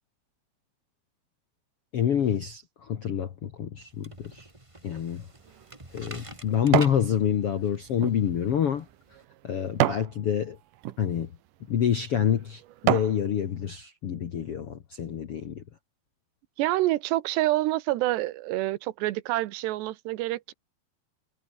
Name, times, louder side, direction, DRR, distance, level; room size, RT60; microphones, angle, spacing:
voice 1, 1.9-4.5 4.8-5.2 5.9-8.9 9.4-10.6 11.0-11.3 11.7-15.6, left 9 dB, 65° left, 1.4 m, -27 dB
sound 1, 3.8-9.2, right 2 dB, 20° right, 0.9 m, -47 dB
sound 2, 5.2-7.1 7.5-10.1 10.7-11.0 11.7-11.8 12.3-13.2 13.7-13.8, right 15 dB, 70° right, 2.1 m, -29 dB
voice 2, 16.6-20.5, right 16 dB, 85° right, 3.2 m, -27 dB
omnidirectional pair, 4.8 m